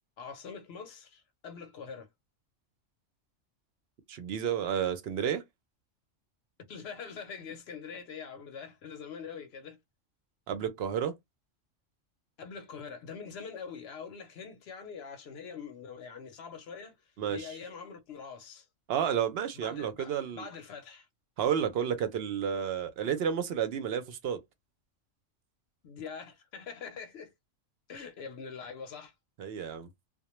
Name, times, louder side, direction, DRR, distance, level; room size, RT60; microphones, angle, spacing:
voice 1, 0.2-2.1 6.7-9.8 12.4-16.9 17.3-18.7 19.6-21.1 25.8-27.3 27.9-29.1, left 6 dB, 60° left, 0.8 m, -44 dB
voice 2, 4.1-5.4 10.5-11.2 17.2-17.6 18.9-20.5 21.4-24.4 29.4-29.9, right 8 dB, 65° right, 0.7 m, -31 dB
2.2 x 2.1 x 2.9 m
omnidirectional pair, 1.3 m